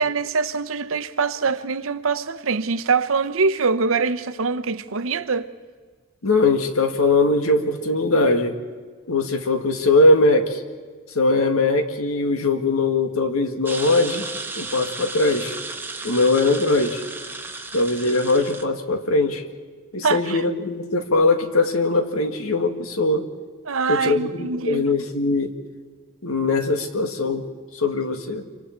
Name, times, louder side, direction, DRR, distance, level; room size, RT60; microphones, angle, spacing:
voice 1, 0.0-5.5 20.0-20.4 23.7-24.9, right 4 dB, 70° right, 0.8 m, -23 dB
voice 2, 6.2-8.6 9.1-10.6 11.2-14.3 14.6-15.5 16.0-17.0 17.7-19.4 19.9-23.3 23.9-25.5 26.2-27.5 27.7-28.4, left 2 dB, 85° left, 1.8 m, -21 dB
sound 1, 13.7-18.6, right 3 dB, 10° right, 1.1 m, -34 dB
27.5 x 24.5 x 4.5 m
head